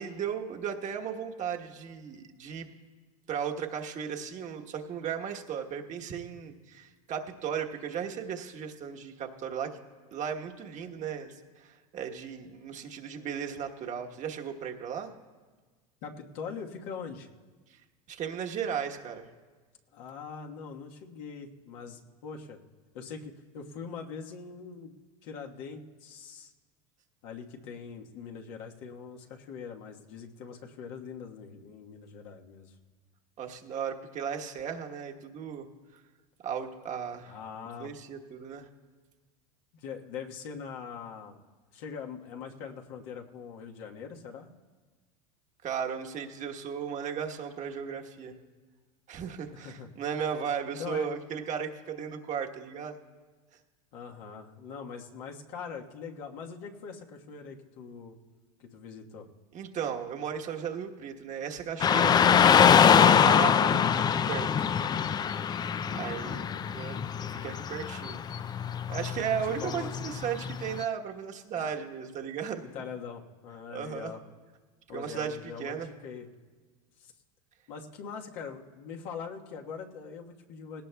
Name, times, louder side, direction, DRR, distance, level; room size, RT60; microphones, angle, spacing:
voice 1, 0.0-2.7 3.3-9.8 10.1-15.1 18.1-19.3 33.4-35.7 36.4-37.3 37.8-38.7 45.6-48.3 49.1-53.0 59.5-64.7 65.9-66.4 66.7-67.0 67.4-68.2 68.9-72.6 73.7-74.1 74.9-75.9, right 7 dB, 40° right, 2 dB, 1.2 m, -36 dB
voice 2, 16.0-17.3 19.9-22.6 22.9-24.9 25.2-26.5 27.2-32.8 37.2-37.9 39.7-41.4 41.7-44.5 49.5-49.9 50.8-51.1 53.9-58.2 58.6-59.3 65.8-66.7 69.6-69.9 71.6-71.8 72.6-74.2 74.9-76.3 77.0-77.1 77.7-80.8, left 6 dB, 65° left, 1 dB, 1.4 m, -42 dB
Car passing by / Traffic noise roadway noise, 61.8-70.8, left 8 dB, 20° left, 0.3 m, -24 dB
19.0 x 17.5 x 2.3 m, 1.4 s
hypercardioid pair, 100°, 20 cm